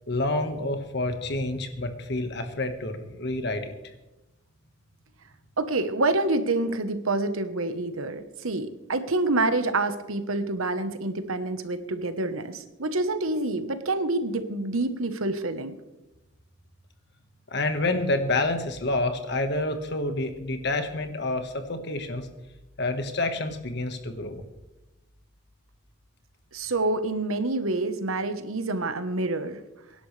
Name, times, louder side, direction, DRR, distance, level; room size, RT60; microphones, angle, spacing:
voice 1, 0.1-3.7 17.5-22.3 22.8-24.4, left 2 dB, 55° left, 6 dB, 1.6 m, -28 dB
voice 2, 5.6-15.7 26.5-29.6, right 2 dB, 90° right, 10 dB, 1.2 m, -27 dB
24.0 x 11.0 x 3.4 m, 1.0 s
head